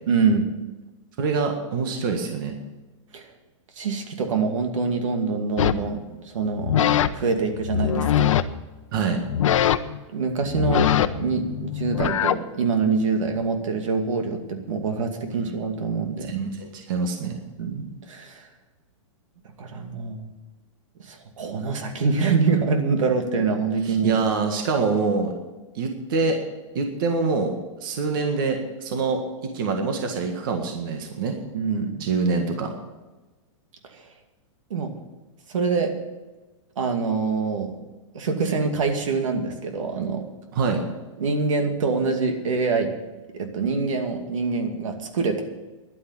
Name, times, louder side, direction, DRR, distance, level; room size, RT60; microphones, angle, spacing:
voice 1, 0.1-0.5 3.1-3.2 3.8-8.3 10.1-10.9 11.1-16.3 17.6-18.4 19.6-20.3 21.0-24.2 31.5-32.1 33.9-34.0 34.7-34.9 35.5-35.9 36.8-37.8 38.1-40.2 41.2-42.9 43.3-45.5, right 4 dB, 75° right, 5 dB, 2.4 m, -25 dB
voice 2, 1.2-2.5 8.9-9.2 15.4-15.5 16.2-17.4 23.8-25.3 25.7-26.4 26.7-29.2 29.5-31.3 32.0-32.7 40.5-40.8, right 4 dB, 40° right, 4 dB, 1.7 m, -25 dB
sound 1, 5.6-5.9 6.5-7.1 7.5-8.4 9.2-10.0 10.4-12.4, left 10 dB, 75° left, 0.8 m, -22 dB
11.0 x 9.6 x 8.9 m, 1.2 s
supercardioid pair, 180°, 16 cm